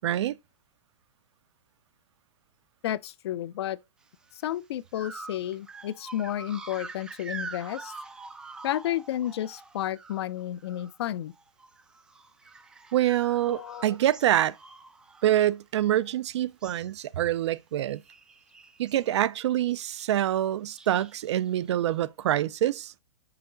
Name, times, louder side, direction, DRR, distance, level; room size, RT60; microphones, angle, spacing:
voice 1, 0.0-0.3 12.9-14.5 15.2-18.0 18.8-22.9, right 12 dB, 65° right, 0.5 m, -26 dB
voice 2, 2.8-3.8 4.4-7.9 8.6-11.3 13.5-14.0, left 12 dB, 60° left, 0.5 m, -32 dB
sound 1, 4.3-4.5 4.9-11.1 11.3-16.1 16.4-16.9 17.2-17.5 17.8-19.1 19.7-20.2 20.7-22.0, right 3 dB, 5° right, 0.3 m, -46 dB
5.8 x 4.6 x 3.8 m
hypercardioid pair, 165°, 16 cm